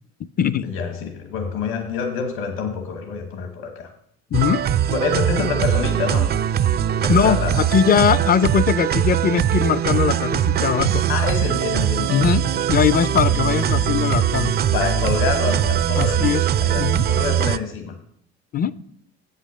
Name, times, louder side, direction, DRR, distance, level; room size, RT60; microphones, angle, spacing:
voice 1, 0.6-3.9 4.9-6.4 7.0-7.7 11.1-12.6 13.2-13.4 14.1-14.3 14.7-18.0, left 6 dB, 65° left, 1.4 m, -27 dB
voice 2, 4.3-4.6 7.1-11.0 12.1-14.5 16.0-16.4 16.8-17.0 18.5-18.7, left 8 dB, 30° left, 0.4 m, -20 dB
sound 1, 4.3-17.6, right 10 dB, 30° right, 0.4 m, -21 dB
8.0 x 5.7 x 6.3 m
hypercardioid pair, 70°, 33 cm